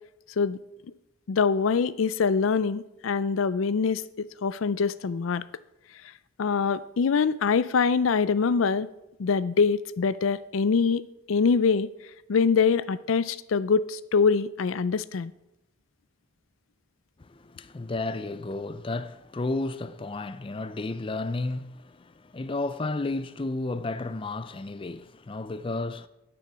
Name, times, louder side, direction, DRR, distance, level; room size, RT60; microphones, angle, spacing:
voice 1, 1.3-5.4 6.4-8.9 9.2-11.9 12.3-15.3, left 5 dB, 80° left, 0.4 m, -24 dB
voice 2, 17.2-26.1, left 2 dB, 25° left, 0.4 m, -32 dB
10.0 x 9.3 x 6.0 m
head